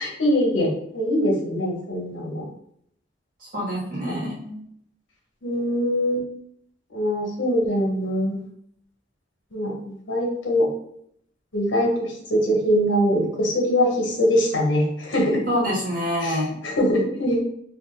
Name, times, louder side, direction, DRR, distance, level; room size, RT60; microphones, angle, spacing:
voice 1, 0.0-2.4 4.1-4.2 5.4-6.2 6.9-8.4 9.5-10.7 11.5-15.4 16.2-17.4, equal, 80° left, -1 dB, 1.0 m, -23 dB
voice 2, 3.5-4.6 15.5-16.5, equal, 45° right, -4 dB, 1.1 m, -26 dB
2.5 x 2.4 x 3.6 m, 0.69 s
head